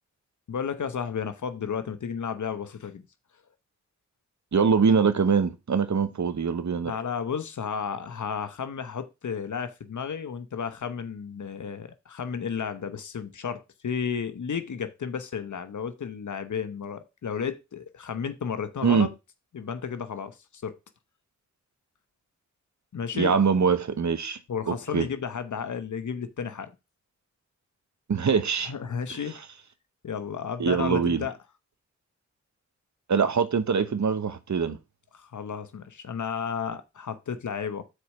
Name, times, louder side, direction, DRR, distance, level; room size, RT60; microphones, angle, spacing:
voice 1, 0.5-3.0 6.8-19.1 19.5-20.8 22.9-23.3 24.5-26.7 28.6-29.4 30.0-31.4 35.1-37.8, left 7 dB, 75° left, 1.0 m, -33 dB
voice 2, 4.5-6.9 18.8-19.1 23.1-24.4 24.7-25.1 28.1-28.7 30.6-31.2 33.1-34.8, right 6 dB, 70° right, 1.1 m, -23 dB
6.5 x 4.8 x 5.4 m
cardioid pair, 55°, 30 cm